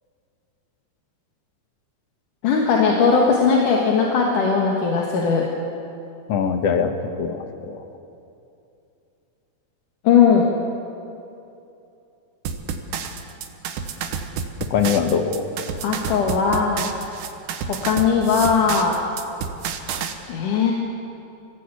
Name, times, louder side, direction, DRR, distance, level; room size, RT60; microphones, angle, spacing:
voice 1, 2.4-5.5 10.0-10.5 15.8-16.9 17.7-18.9 20.3-20.7, left 5 dB, 75° left, -1 dB, 3.2 m, -18 dB
voice 2, 6.3-6.9 7.2-7.8 14.7-15.5, left 6 dB, 60° left, 6 dB, 2.1 m, -22 dB
sound 1, 12.5-20.1, right 6 dB, 75° right, 2.7 m, -30 dB
24.0 x 16.0 x 8.4 m, 2.7 s
omnidirectional pair, 3.7 m